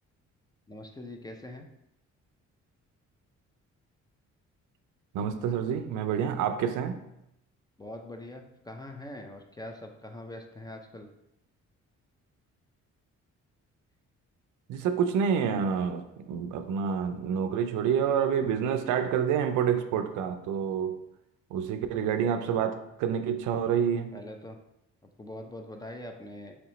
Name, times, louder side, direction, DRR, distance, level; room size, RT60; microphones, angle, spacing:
voice 1, 0.7-1.7 7.8-11.1 24.1-24.6 25.2-26.6, left 1 dB, 15° left, 4 dB, 0.4 m, -43 dB
voice 2, 5.1-7.0 14.7-21.0 21.5-24.2, right 7 dB, 80° right, 8 dB, 0.5 m, -28 dB
3.2 x 2.9 x 4.0 m, 0.84 s
cardioid pair, 90°, 30 cm